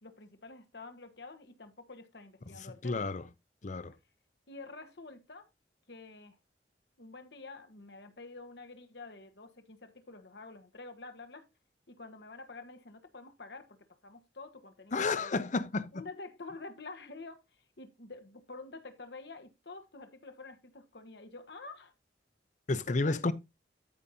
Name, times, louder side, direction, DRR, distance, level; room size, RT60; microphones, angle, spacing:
voice 1, 0.0-3.0 4.5-5.5 5.9-6.4 7.0-11.5 11.9-13.8 14.0-15.3 15.9-21.9 22.9-23.2, left 3 dB, 70° left, 1.4 m, -48 dB
voice 2, 2.8-3.2 3.6-3.9 14.9-15.9 22.7-23.3, left 3 dB, 45° left, 0.7 m, -31 dB
14.0 x 5.4 x 2.8 m
head